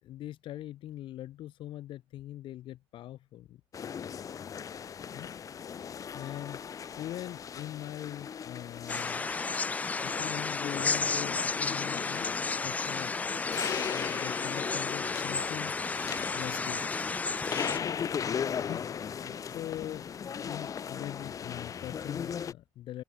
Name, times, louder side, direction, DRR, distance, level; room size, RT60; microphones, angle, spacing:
voice 1, 0.0-3.6 5.1-5.3 6.1-6.6 7.0-9.3 10.0-13.1 13.9-15.8 16.3-16.8 18.6-23.0, left 13 dB, 55° left, 4.4 m, -42 dB
sound 1, 3.7-22.5, left 7 dB, 35° left, 4.4 m, -38 dB
sound 2, 8.9-17.8, left 4 dB, 15° left, 0.5 m, -32 dB
open air
cardioid pair, 125°, 10 cm